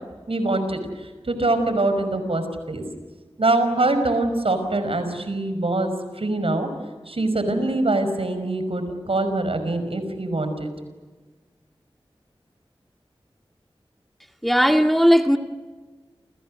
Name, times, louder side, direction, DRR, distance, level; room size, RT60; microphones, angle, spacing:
voice 1, 0.3-2.8 3.4-6.7 7.1-10.7, right 2 dB, 75° right, 9 dB, 5.4 m, -24 dB
voice 2, 14.4-15.4, equal, ahead, 5 dB, 2.0 m, -17 dB
29.5 x 29.0 x 6.5 m, 1.3 s
wide cardioid pair, 60°, 10 cm